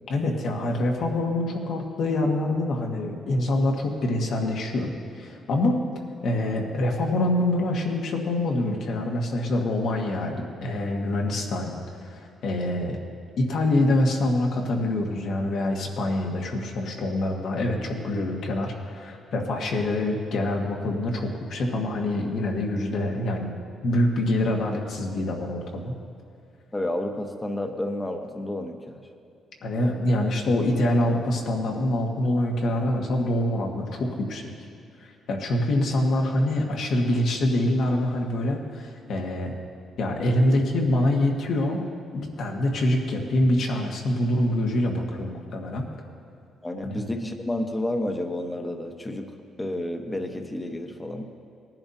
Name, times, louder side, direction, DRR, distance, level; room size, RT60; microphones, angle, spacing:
voice 1, 0.1-5.8 6.2-13.0 13.4-23.5 23.8-25.9 29.6-34.5 35.0-39.5 40.0-41.9 42.1-45.9 46.8-47.0, left 1 dB, 70° left, 1 dB, 1.6 m, -25 dB
voice 2, 26.7-29.1 46.6-51.2, left 1 dB, 15° left, 4 dB, 1.1 m, -31 dB
19.0 x 10.5 x 2.8 m, 2.4 s
cardioid pair, 90°, 0 cm